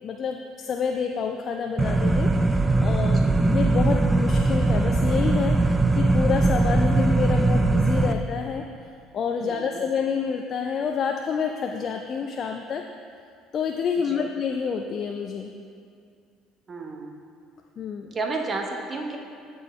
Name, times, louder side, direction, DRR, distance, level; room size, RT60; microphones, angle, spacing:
voice 1, 0.0-8.6 9.1-12.9 13.5-15.5 17.8-18.1, left 6 dB, 50° left, 4 dB, 0.4 m, -28 dB
sound 1, 1.8-8.1, right 2 dB, 15° right, 0.4 m, -21 dB
voice 2, 3.2-3.5 9.4-9.8 14.1-14.3 16.7-17.1 18.1-19.2, right 3 dB, 35° right, 2 dB, 1.0 m, -32 dB
13.5 x 4.6 x 3.2 m, 2.4 s
hypercardioid pair, 70°, 0 cm